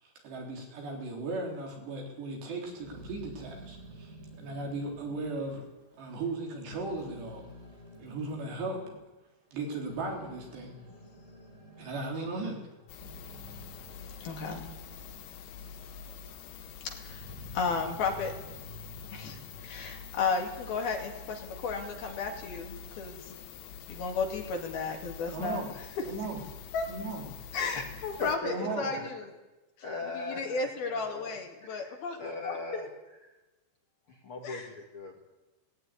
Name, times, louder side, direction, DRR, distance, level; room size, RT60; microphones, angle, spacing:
voice 1, 0.2-5.7 6.0-7.5 8.0-8.8 9.5-10.7 11.8-12.6 25.3-25.7 26.1-26.4 26.9-27.3 28.4-29.0, right 3 dB, 80° right, 0 dB, 5.8 m, -36 dB
Growling, 2.6-6.4 6.7-9.0 9.6-15.4 15.8-16.5 16.9-20.7, equal, 20° right, 4.8 m, -50 dB
sound 1, 12.9-28.4, left 7 dB, 85° left, 3.2 m, -46 dB
voice 2, 14.2-14.7 15.6-16.4 16.8-17.3 17.5-18.3 19.1-23.3 23.9-25.6 26.0-26.1 26.7-26.9 27.5-29.3 30.1-32.9 34.4-34.7, left 4 dB, 65° left, 2 dB, 4.2 m, -34 dB
voice 3, 28.2-29.1 29.8-32.9 34.1-35.2, left 3 dB, 45° left, 0 dB, 1.9 m, -39 dB
18.5 x 15.0 x 9.8 m, 1.1 s
omnidirectional pair, 4.8 m